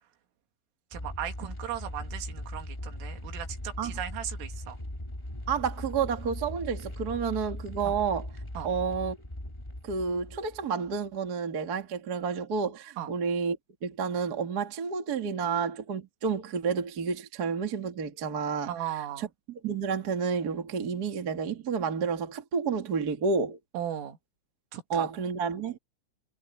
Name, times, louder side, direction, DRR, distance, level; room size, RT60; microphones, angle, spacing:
sound 1, 0.9-11.0, left 1 dB, 40° left, 0.4 m, -39 dB
voice 1, 0.9-4.8 7.8-8.0 8.6-8.7 13.0-13.1 18.7-19.3 23.7-24.2 24.7-25.1, right 11 dB, 80° right, 4.7 m, -37 dB
voice 2, 5.5-8.3 8.6-9.2 9.8-13.6 13.8-18.7 19.2-19.3 19.6-23.6 24.9-25.8, right 6 dB, 55° right, 1.1 m, -30 dB
omnidirectional pair, 5.7 m